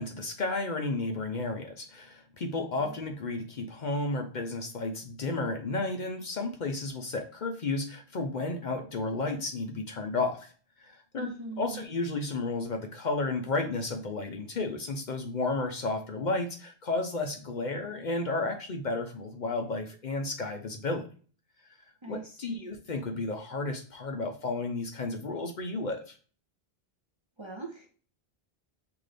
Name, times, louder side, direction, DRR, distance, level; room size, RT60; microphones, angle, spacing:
voice 1, 0.0-10.5 10.8-11.3 11.6-21.1 22.1-26.2, left 3 dB, 50° left, 5 dB, 0.7 m, -32 dB
voice 2, 11.2-11.9 22.0-22.7 27.4-27.9, right 3 dB, 35° right, 1 dB, 0.6 m, -41 dB
5.9 x 2.5 x 3.3 m, 0.39 s
omnidirectional pair, 1.0 m